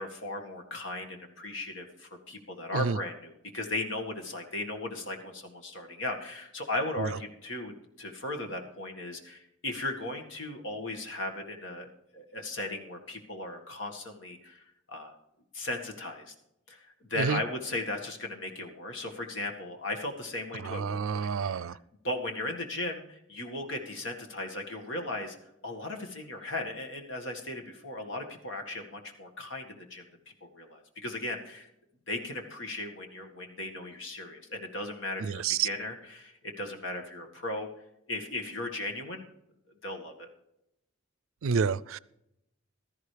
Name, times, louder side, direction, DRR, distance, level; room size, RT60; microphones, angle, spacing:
voice 1, 0.0-7.7 8.0-15.1 15.5-16.3 16.7-21.8 22.0-25.4 25.6-30.1 30.4-31.7 32.1-37.7 38.1-39.3 39.8-40.3, left 2 dB, 65° left, 3 dB, 1.9 m, -37 dB
voice 2, 20.6-21.7 35.2-35.7 41.4-42.0, right 6 dB, 90° right, 20 dB, 0.4 m, -29 dB
16.0 x 13.5 x 3.4 m, 0.83 s
head